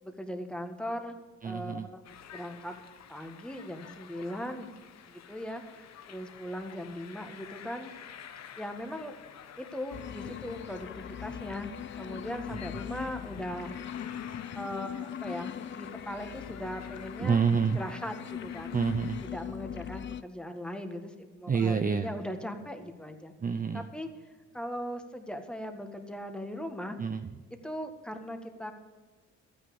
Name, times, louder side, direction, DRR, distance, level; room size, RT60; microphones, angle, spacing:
voice 1, 0.0-1.2 1.4-2.0 2.3-2.8 3.1-4.7 5.1-7.9 8.6-9.2 9.6-11.7 12.0-13.7 14.5-17.4 17.7-18.8 19.2-23.3 23.7-24.1 24.5-27.0 27.6-28.7, equal, 5° left, 5 dB, 1.7 m, -39 dB
voice 2, 1.4-1.9 17.2-17.8 18.7-19.2 21.5-22.1 23.4-23.8 27.0-27.3, right 6 dB, 30° right, 8 dB, 0.7 m, -28 dB
sound 1, 2.0-19.3, left 9 dB, 60° left, 1.0 m, -50 dB
sound 2, 9.9-20.2, left 9 dB, 40° left, 0.5 m, -40 dB
12.5 x 9.5 x 7.1 m, 1.4 s
cardioid pair, 90°, 30 cm